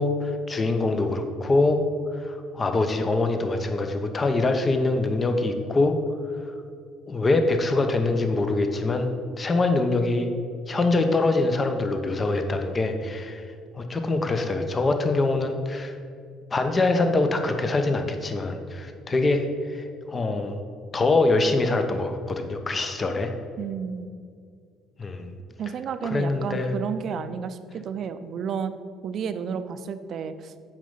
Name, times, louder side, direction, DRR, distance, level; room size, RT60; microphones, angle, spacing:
voice 1, 0.0-1.8 2.1-6.0 6.4-6.5 7.1-9.1 9.4-10.3 10.7-13.5 13.7-16.0 16.5-20.6 20.9-23.3 25.0-25.3 26.0-26.7, left 2 dB, 30° left, 6 dB, 0.9 m, -24 dB
voice 2, 23.6-24.1 25.6-28.7 29.0-30.7, right 7 dB, 55° right, 11 dB, 0.5 m, -32 dB
7.4 x 5.3 x 5.6 m, 2.2 s
hypercardioid pair, 65°, 0 cm